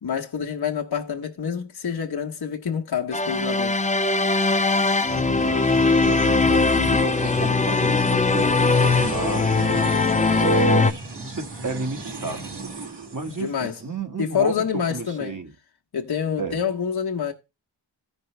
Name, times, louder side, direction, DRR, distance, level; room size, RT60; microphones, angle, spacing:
voice 1, 0.0-3.8 13.4-13.8 14.2-15.4 15.9-17.3, left 7 dB, 55° left, 1.2 m, -27 dB
sound 1, 3.1-10.9, left 3 dB, 15° left, 0.5 m, -20 dB
sound 2, 4.2-13.9, right 3 dB, 65° right, 2.4 m, -36 dB
voice 2, 5.1-15.5 16.4-16.6, right 4 dB, 40° right, 1.6 m, -32 dB
14.0 x 5.3 x 3.3 m
cardioid pair, 60°, 45 cm